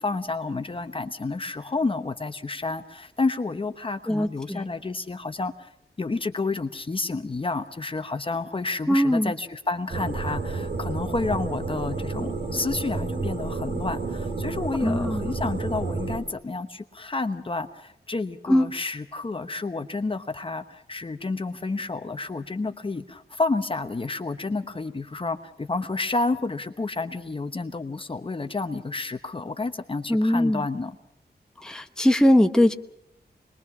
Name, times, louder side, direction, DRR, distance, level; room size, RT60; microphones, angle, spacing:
voice 1, 0.0-5.7 6.0-31.0, left 3 dB, 30° left, 8 dB, 1.0 m, -30 dB
voice 2, 4.1-4.6 8.9-9.3 14.8-15.3 18.5-18.7 30.1-30.6 31.6-32.7, left 1 dB, 5° left, 5 dB, 1.0 m, -21 dB
sound 1, 9.9-16.2, right 3 dB, 60° right, 4.0 m, -30 dB
26.0 x 21.0 x 6.1 m, 0.71 s
wide cardioid pair, 160°, 18 cm